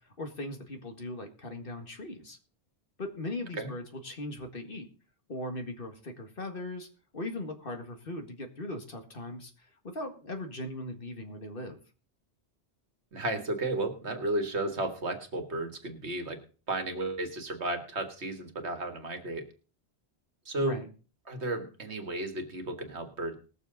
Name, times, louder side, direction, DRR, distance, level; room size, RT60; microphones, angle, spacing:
voice 1, 0.2-2.4 3.0-4.9 5.3-6.9 7.1-11.8 20.6-20.9, left 1 dB, 55° left, 5 dB, 2.0 m, -39 dB
voice 2, 13.1-16.4 16.7-19.5 20.5-20.8 21.3-23.4, right 2 dB, 85° right, 6 dB, 2.1 m, -33 dB
20.5 x 7.4 x 3.9 m, 0.37 s
omnidirectional pair, 1.1 m